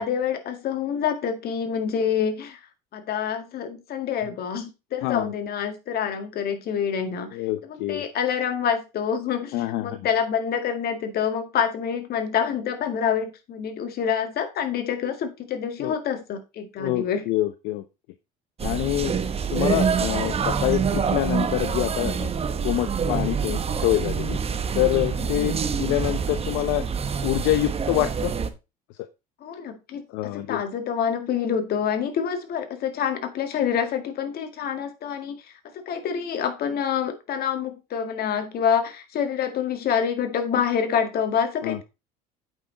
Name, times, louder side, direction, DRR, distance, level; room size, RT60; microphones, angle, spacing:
voice 1, 0.0-2.6 2.9-7.4 7.7-17.2 25.2-25.5 29.4-35.4 35.7-41.8, left 7 dB, 55° left, 7 dB, 2.0 m, -27 dB
voice 2, 7.3-8.0 9.5-10.0 15.8-15.9 16.8-17.8 18.6-19.1 19.5-22.3 22.6-24.4 24.7-26.9 27.2-28.3 30.1-30.6 41.6-41.8, left 16 dB, 75° left, 11 dB, 0.7 m, -26 dB
sound 1, 18.6-28.5, right 6 dB, 30° right, 1.1 m, -26 dB
8.3 x 5.9 x 3.9 m, 0.27 s
supercardioid pair, 85°, 19 cm